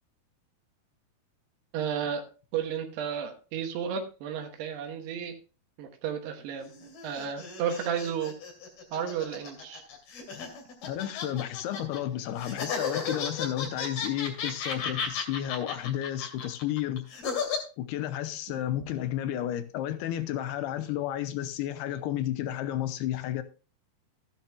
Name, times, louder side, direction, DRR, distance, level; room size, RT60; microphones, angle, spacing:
voice 1, 1.7-2.3 2.5-5.4 5.8-6.7 7.0-8.4 8.9-9.8, right 8 dB, 90° right, 3.3 m, -32 dB
sound 1, 6.6-12.0 12.4-17.6, left 5 dB, 70° left, 4.5 m, -34 dB
voice 2, 10.8-17.1 17.8-23.4, left 12 dB, 90° left, 2.8 m, -32 dB
14.5 x 10.0 x 2.3 m
omnidirectional pair, 4.6 m